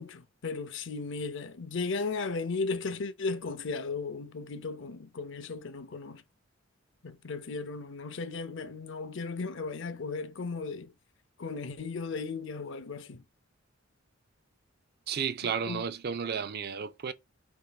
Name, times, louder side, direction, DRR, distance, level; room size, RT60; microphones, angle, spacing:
voice 1, 0.0-6.2 7.0-10.9 11.4-13.2 15.4-15.8, left 4 dB, 65° left, 0.6 m, -36 dB
voice 2, 15.1-17.1, right 7 dB, 50° right, 0.5 m, -33 dB
5.0 x 4.5 x 2.3 m
head